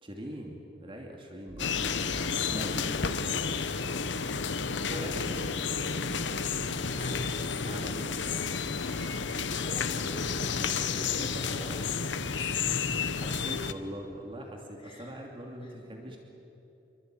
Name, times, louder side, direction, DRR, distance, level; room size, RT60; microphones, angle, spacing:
voice 1, 0.0-2.1 2.4-3.4 4.9-5.5 7.6-8.4 11.2-11.8 12.7-16.2, equal, 30° right, 1 dB, 2.8 m, -42 dB
sound 1, 1.5-11.5, equal, 70° right, 6.7 m, -50 dB
sound 2, 1.6-13.7, left 5 dB, 70° left, 1.1 m, -31 dB
voice 2, 4.7-6.3 6.9-7.2 9.6-11.7 12.2-12.5 14.8-15.2 15.6-15.7 16.0-16.1, left 1 dB, 30° left, -1 dB, 6.2 m, -45 dB
26.5 x 24.0 x 9.2 m, 2.9 s
head